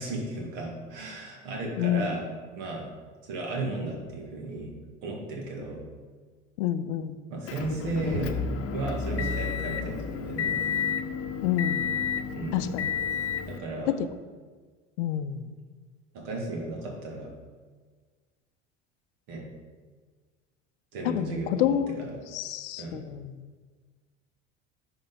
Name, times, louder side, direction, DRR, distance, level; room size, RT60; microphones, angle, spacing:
voice 1, 0.0-2.2 2.6-2.9 3.2-4.7 5.0-5.8 7.3-8.3 8.7-10.6 12.3-12.7 13.5-13.9 16.1-17.3 19.3-19.4 20.9-22.1 22.8-23.0, right 2 dB, 55° right, -1 dB, 2.6 m, -34 dB
voice 2, 1.8-2.1 6.6-7.2 11.4-11.9 12.5-12.9 13.9-14.1 15.0-15.5 21.0-22.0 22.3-23.4, left 11 dB, 65° left, 11 dB, 0.7 m, -28 dB
Motor vehicle (road) / Engine, 7.5-13.6, left 6 dB, 40° left, 1.0 m, -31 dB
10.0 x 6.4 x 3.9 m, 1.5 s
figure-of-eight pair, 65°, 38 cm